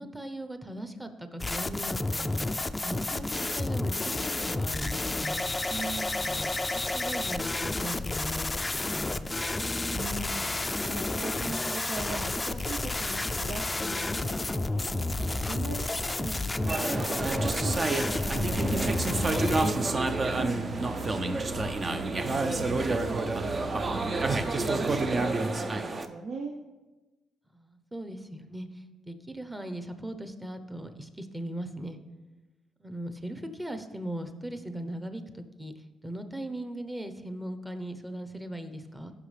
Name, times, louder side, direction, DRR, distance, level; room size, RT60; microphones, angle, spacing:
voice 1, 0.0-5.5 6.2-9.4 13.9-14.3 19.0-19.3 27.5-32.0 32.8-39.1, right 1 dB, 10° right, 8 dB, 0.9 m, -39 dB
sound 1, 1.4-19.7, left 2 dB, 20° left, 0.4 m, -31 dB
voice 2, 5.7-6.5 9.7-19.0 19.9-26.6, right 3 dB, 70° right, 2 dB, 0.7 m, -40 dB
sound 2, 16.7-26.1, right 3 dB, 35° right, 0.6 m, -29 dB
sound 3, 18.3-25.2, right 2 dB, 85° right, 1.2 m, -39 dB
15.0 x 5.8 x 3.3 m, 1.2 s
cardioid pair, 90°, 0 cm